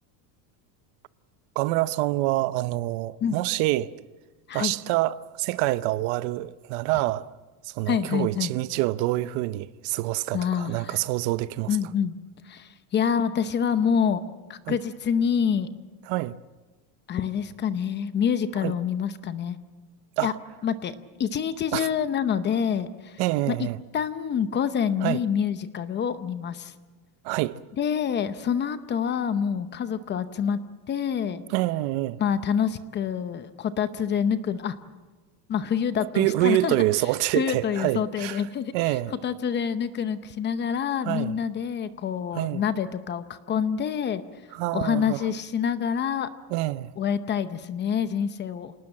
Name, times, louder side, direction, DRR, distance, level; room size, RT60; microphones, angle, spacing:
voice 1, 1.6-3.9 4.5-7.3 7.6-11.8 14.7-14.8 16.1-16.4 18.6-18.7 20.2-20.3 21.7-21.9 23.2-23.8 25.0-25.2 27.2-27.6 31.5-32.2 36.2-38.4 38.7-39.1 41.0-41.4 42.3-42.6 44.5-45.3 46.5-46.9, right 17 dB, 55° right, 0.7 m, -26 dB
voice 2, 7.9-8.5 10.3-11.0 11.7-12.1 12.4-14.2 14.5-15.7 17.1-19.6 20.2-20.3 20.6-23.2 23.5-23.7 23.9-26.7 27.8-30.6 30.9-31.4 32.2-34.8 35.5-36.7 37.3-38.7 39.2-44.2 44.7-46.3 47.0-48.7, left 7 dB, 20° left, 0.7 m, -27 dB
27.5 x 19.0 x 7.8 m
cardioid pair, 160°, 49 cm